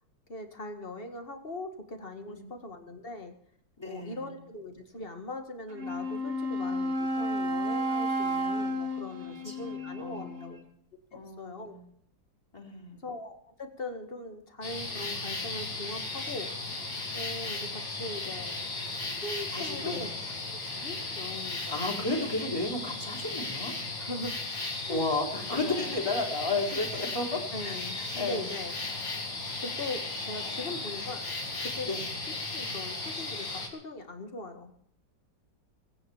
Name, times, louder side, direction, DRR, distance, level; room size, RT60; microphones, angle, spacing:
voice 1, 0.3-3.3 3.8-10.6 11.4-11.7 13.0-16.5 17.1-20.1 20.7-21.8 24.0-24.4 24.9-25.1 25.6-25.9 27.5-28.7 29.6-31.9 32.5-34.8, left 2 dB, 30° left, 6 dB, 2.0 m, -40 dB
voice 2, 3.8-4.3 9.2-10.6 11.1-11.8 12.5-13.0 19.5-20.1 21.7-23.7 24.9-28.5 31.9-32.0, left 2 dB, 15° left, 0 dB, 4.0 m, -33 dB
Wind instrument woodwind instrument, 5.7-10.6, equal, 35° right, 1.5 m, -32 dB
sound 1, 14.6-33.7, left 3 dB, 90° left, 3.8 m, -36 dB
20.5 x 9.8 x 7.2 m, 0.70 s
omnidirectional pair, 2.0 m